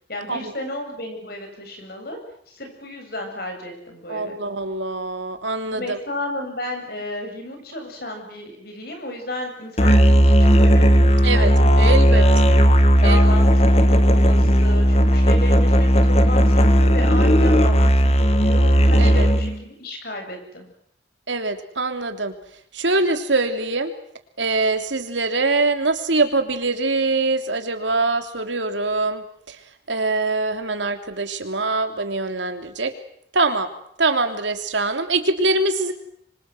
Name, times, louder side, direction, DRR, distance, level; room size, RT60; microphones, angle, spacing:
voice 1, 0.1-2.2 2.5-4.4 5.7-12.3 13.0-20.7, left 1 dB, 55° left, 4 dB, 7.7 m, -33 dB
voice 2, 4.1-6.0 11.2-11.5 11.8-12.6 13.0-13.2 19.0-19.3 21.3-22.3 22.7-23.9 24.4-29.6 29.9-32.9 33.3-33.7 34.0-35.9, right 3 dB, 85° right, 6 dB, 3.2 m, -23 dB
Musical instrument, 9.8-19.6, equal, 35° left, 1.9 m, -15 dB
26.0 x 25.5 x 8.0 m, 0.68 s
head